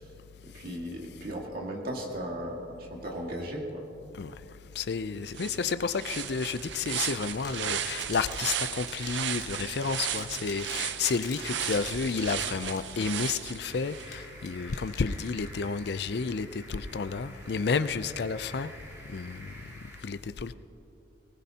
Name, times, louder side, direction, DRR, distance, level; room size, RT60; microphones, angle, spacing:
voice 1, 0.5-3.8, equal, 50° right, 2.0 m, -36 dB
voice 2, 4.8-18.7 19.1-19.4 20.0-20.5, left 5 dB, 60° left, 0.4 m, -31 dB
sound 1, 4.9-5.0 5.3-14.1, right 9 dB, 75° right, 0.5 m, -35 dB
sound 2, 7.4-15.9, left 6 dB, 40° left, 1.5 m, -47 dB
sound 3, 13.6-20.0, equal, 15° right, 2.5 m, -48 dB
19.5 x 19.0 x 2.9 m
head